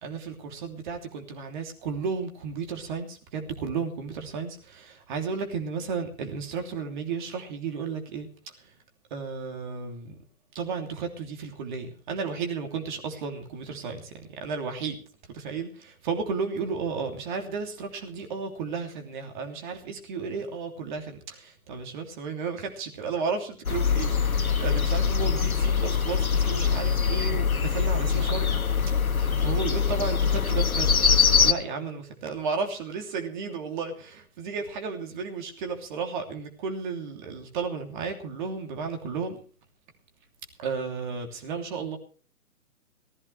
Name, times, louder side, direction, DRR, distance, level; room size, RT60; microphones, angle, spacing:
voice 1, 0.0-8.7 9.1-10.2 10.5-15.0 15.3-28.5 29.4-31.0 31.4-39.4 40.6-42.0, right 5 dB, 35° right, 4 dB, 3.1 m, -33 dB
sound 1, 23.7-31.5, left 6 dB, 75° left, 1.5 m, -23 dB
18.5 x 15.5 x 3.3 m, 0.40 s
figure-of-eight pair, 135°, 43 cm